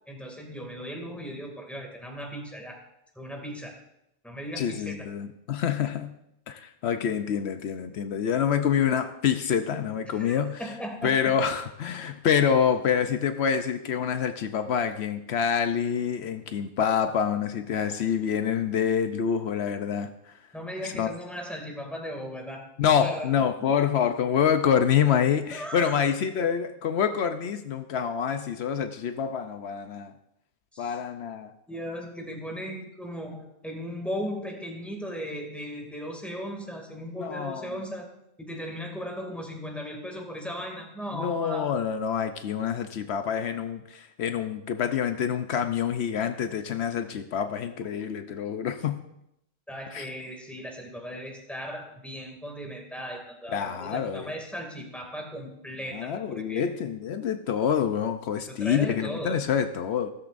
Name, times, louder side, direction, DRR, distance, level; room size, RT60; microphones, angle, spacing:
voice 1, 0.1-2.8 3.2-3.7 4.2-5.1 10.1-11.3 17.8-18.0 20.5-22.6 23.0-23.3 23.6-23.7 25.5-26.0 30.7-31.0 31.7-38.1 38.4-41.8 49.7-56.6 58.6-59.4, equal, ahead, 1 dB, 2.3 m, -37 dB
voice 2, 4.6-6.1 6.5-10.6 11.0-20.1 20.8-21.1 22.8-30.1 30.8-31.5 37.1-37.7 41.1-49.0 49.9-50.1 53.5-54.3 55.9-60.1, left 8 dB, 80° left, 8 dB, 0.9 m, -26 dB
15.5 x 13.5 x 2.6 m, 0.82 s
omnidirectional pair, 1.1 m